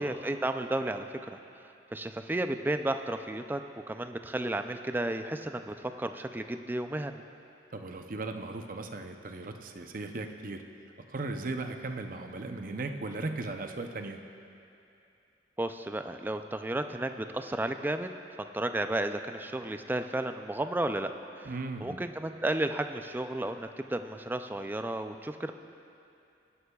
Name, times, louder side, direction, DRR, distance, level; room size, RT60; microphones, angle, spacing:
voice 1, 0.0-1.4 1.9-3.6 3.9-7.2 15.6-18.1 18.4-21.1 21.4-21.5 21.8-25.5, right 1 dB, 10° right, 8 dB, 0.3 m, -33 dB
voice 2, 7.7-10.6 11.1-14.2 21.4-22.0, right 3 dB, 50° right, 5 dB, 0.6 m, -37 dB
19.5 x 11.0 x 2.3 m, 2.6 s
head